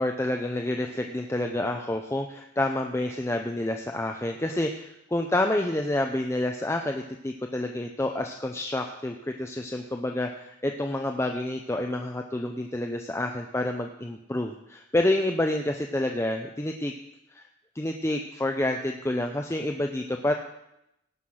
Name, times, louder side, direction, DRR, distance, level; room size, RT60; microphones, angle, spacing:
voice 1, 0.0-16.9 17.3-17.5 17.8-20.3, left 1 dB, 15° left, 3 dB, 0.6 m, -28 dB
17.5 x 5.9 x 6.3 m, 0.83 s
head